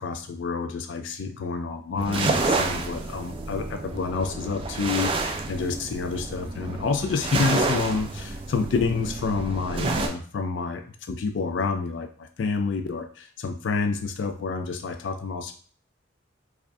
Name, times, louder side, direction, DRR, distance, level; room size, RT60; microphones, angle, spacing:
voice 1, 0.0-15.5, left 4 dB, 75° left, 6 dB, 0.4 m, -28 dB
sound 1, 2.0-10.1, right 3 dB, 30° right, 0.3 m, -29 dB
4.8 x 2.2 x 2.6 m, 0.43 s
head